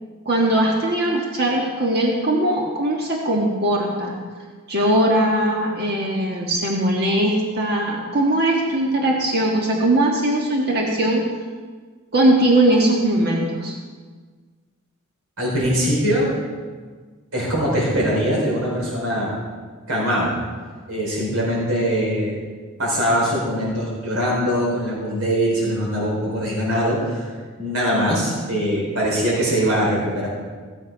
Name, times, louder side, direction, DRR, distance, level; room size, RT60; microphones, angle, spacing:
voice 1, 0.2-4.2 4.7-11.2 12.1-13.7, right 1 dB, 50° right, -1 dB, 1.5 m, -20 dB
voice 2, 15.4-16.3 17.3-19.4 19.9-20.3 20.9-22.4 22.8-27.3 27.6-30.3, equal, 80° right, -4 dB, 4.6 m, -22 dB
16.0 x 7.4 x 5.4 m, 1.5 s
head